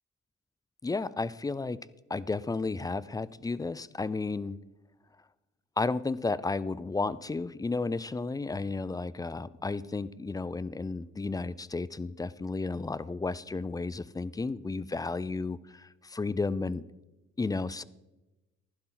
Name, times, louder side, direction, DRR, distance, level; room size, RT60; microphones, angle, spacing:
voice 1, 0.8-1.8 2.1-4.6 5.8-16.8 17.4-17.8, left 3 dB, 10° left, 19 dB, 0.4 m, -33 dB
15.0 x 11.5 x 3.9 m, 1.0 s
cardioid pair, 90°, 30 cm